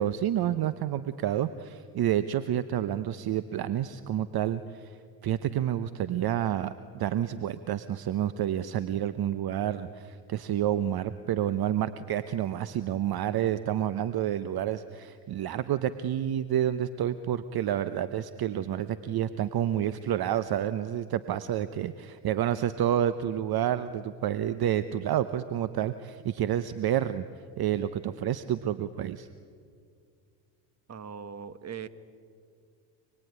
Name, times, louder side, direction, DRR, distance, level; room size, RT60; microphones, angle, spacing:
voice 1, 0.0-5.0 5.2-27.2 27.6-29.3, right 11 dB, 50° right, 13 dB, 1.0 m, -29 dB
voice 2, 30.9-31.9, right 7 dB, 30° right, 13 dB, 1.5 m, -40 dB
27.5 x 21.0 x 9.5 m, 2.3 s
supercardioid pair, 85°, 48 cm